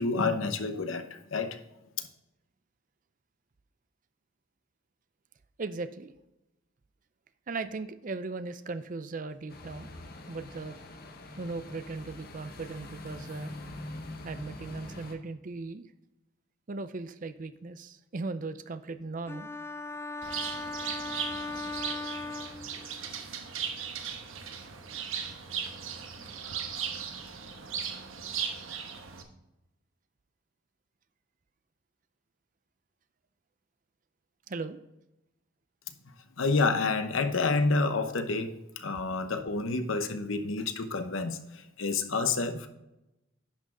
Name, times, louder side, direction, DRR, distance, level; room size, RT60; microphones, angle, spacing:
voice 1, 0.0-1.6 2.0-2.1 36.4-42.7, left 3 dB, 85° left, 8 dB, 0.9 m, -29 dB
voice 2, 5.6-6.1 7.5-9.9 10.3-10.8 11.4-13.6 14.2-15.9 16.7-19.5 34.5-34.8, right 3 dB, 40° right, 11 dB, 0.5 m, -38 dB
sound 1, 9.5-15.1, left 1 dB, 50° left, 1.2 m, -44 dB
sound 2, 19.3-23.2, left 3 dB, 10° left, 0.4 m, -38 dB
Bird, 20.2-29.2, right 7 dB, 85° right, 1.1 m, -37 dB
10.5 x 6.2 x 3.8 m, 0.94 s
head